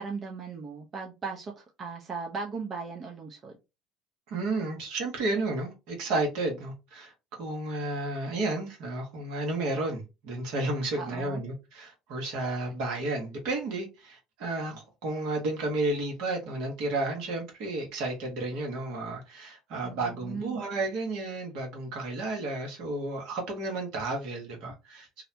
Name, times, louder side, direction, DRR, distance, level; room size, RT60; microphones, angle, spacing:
voice 1, 0.0-3.6 11.0-11.4 19.8-20.6, right 5 dB, 40° right, 0.7 m, -37 dB
voice 2, 4.3-7.1 7.4-25.3, right 2 dB, 70° right, 1.1 m, -32 dB
2.7 x 2.1 x 2.6 m
hypercardioid pair, 70°, 0 cm